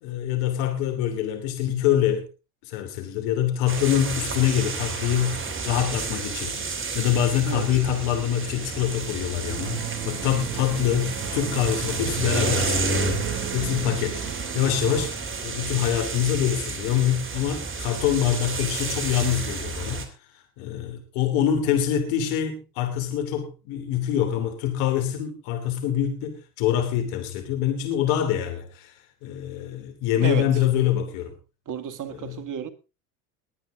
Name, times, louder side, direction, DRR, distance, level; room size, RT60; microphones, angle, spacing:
voice 1, 0.0-2.2 2.7-6.6 6.9-13.0 13.5-14.2 14.5-20.0 20.6-28.9 29.2-31.3 32.1-32.4, left 10 dB, 70° left, 3.1 m, -25 dB
sound 1, 3.7-20.1, right 3 dB, 25° right, 3.2 m, -30 dB
sound 2, 9.5-15.1, right 13 dB, 80° right, 2.2 m, -36 dB
voice 2, 30.2-30.6 31.7-32.7, right 9 dB, 45° right, 2.1 m, -31 dB
21.5 x 9.4 x 3.7 m
hypercardioid pair, 80°, 45 cm